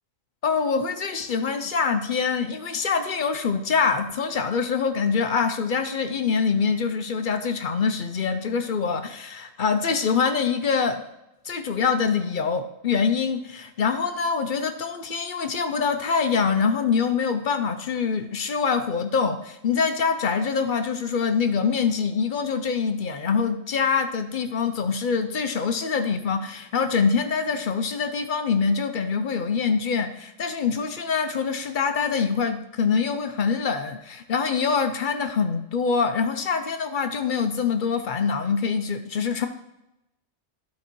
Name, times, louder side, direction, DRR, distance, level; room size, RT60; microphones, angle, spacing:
voice 1, 0.4-11.0 11.4-39.5, left 5 dB, 50° left, 7 dB, 0.6 m, -24 dB
11.5 x 4.2 x 4.5 m, 0.88 s
omnidirectional pair, 1.4 m